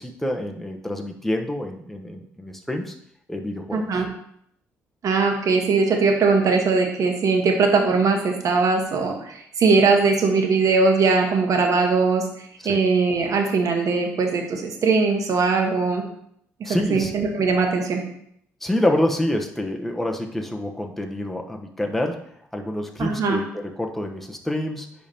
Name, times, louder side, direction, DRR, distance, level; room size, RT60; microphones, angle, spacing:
voice 1, 0.0-2.9 3.3-4.0 12.6-12.8 16.6-17.2 18.6-22.2 22.5-24.9, left 1 dB, 5° left, 2 dB, 1.0 m, -27 dB
voice 2, 3.7-4.1 5.0-12.2 12.6-16.0 16.9-18.0 23.0-23.4, right 4 dB, 60° right, 3 dB, 1.3 m, -20 dB
10.0 x 3.5 x 2.8 m, 0.69 s
hypercardioid pair, 55°, 7 cm